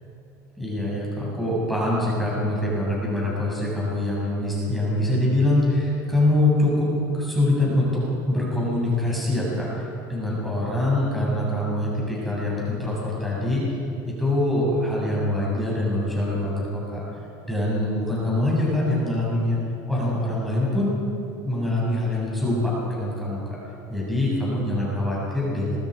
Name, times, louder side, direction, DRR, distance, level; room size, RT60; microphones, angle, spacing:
voice 1, 0.6-13.7 14.1-17.0 17.5-19.6 19.9-20.9 21.4-23.4 23.9-25.8, left 1 dB, ahead, -6 dB, 7.1 m, -24 dB
26.0 x 22.5 x 5.0 m, 2.8 s
supercardioid pair, 145°, 9 cm